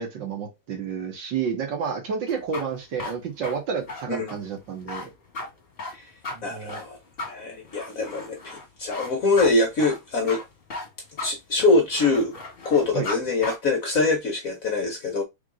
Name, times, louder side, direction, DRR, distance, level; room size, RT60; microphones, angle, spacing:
voice 1, 0.0-5.1 6.3-6.8 12.9-13.1, right 6 dB, 65° right, 1.8 m, -30 dB
sound 1, 2.3-13.2 13.4-13.6, left 2 dB, 30° left, 1.6 m, -36 dB
voice 2, 6.4-7.0 7.2-10.4 11.2-12.3 12.6-15.2, left 3 dB, 55° left, 1.0 m, -24 dB
3.8 x 3.5 x 3.8 m
omnidirectional pair, 2.2 m